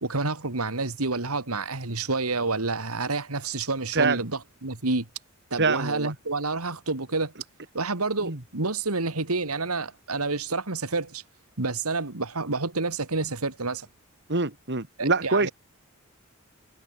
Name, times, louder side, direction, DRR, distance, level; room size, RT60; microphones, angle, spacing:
voice 1, 0.0-4.3 4.6-5.1 5.5-7.3 7.7-11.2 11.6-13.9 15.0-15.5, right 3 dB, 85° right, 2.4 m, -28 dB
voice 2, 3.9-4.2 5.6-6.1 8.2-8.4 14.3-15.5, right 3 dB, 55° right, 2.7 m, -25 dB
head